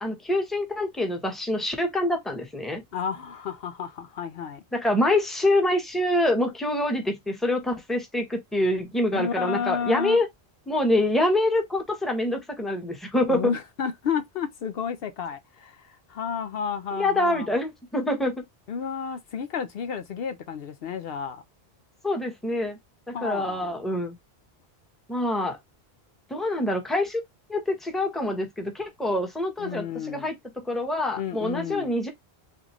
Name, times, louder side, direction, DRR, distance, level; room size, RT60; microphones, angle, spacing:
voice 1, 0.0-2.8 4.7-10.3 10.7-13.5 16.9-18.4 22.0-22.8 23.1-24.2 25.1-25.6 26.3-27.2 27.5-32.1, left 1 dB, ahead, 0.9 m, -25 dB
voice 2, 2.9-4.6 9.1-10.2 13.3-17.5 18.7-21.4 23.1-23.7 29.6-30.3 31.2-31.9, left 7 dB, 70° left, 0.8 m, -31 dB
3.7 x 3.3 x 3.0 m
omnidirectional pair, 1.1 m